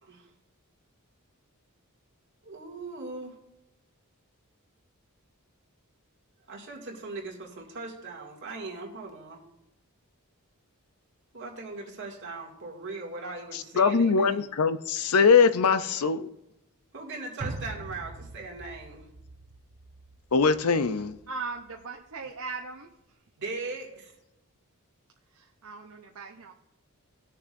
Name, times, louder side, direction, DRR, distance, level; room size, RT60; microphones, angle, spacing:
voice 1, 2.4-3.3 6.5-9.4 11.3-14.4 16.9-19.1 23.4-24.1, right 3 dB, 55° right, -1 dB, 2.4 m, -39 dB
voice 2, 13.8-16.3 20.3-21.2, left 5 dB, 80° left, 13 dB, 0.6 m, -22 dB
sound 1, 17.4-21.8 22.2-22.3, right 2 dB, 35° right, 0.7 m, -42 dB
voice 3, 21.3-22.9 25.3-26.5, right 4 dB, 75° right, 1 dB, 0.8 m, -38 dB
19.0 x 6.8 x 2.6 m, 0.87 s
head